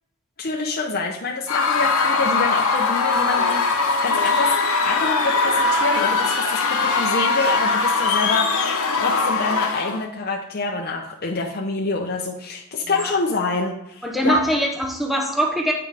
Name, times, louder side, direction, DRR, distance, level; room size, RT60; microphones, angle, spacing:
voice 1, 0.4-4.6 4.8-14.4, left 3 dB, 45° left, 0 dB, 0.7 m, -26 dB
Screaming / Cheering / Crowd, 1.5-10.0, left 4 dB, 85° left, 1.0 m, -21 dB
voice 2, 14.0-15.7, right 1 dB, ahead, 1 dB, 0.6 m, -22 dB
8.7 x 4.7 x 3.4 m, 0.86 s
head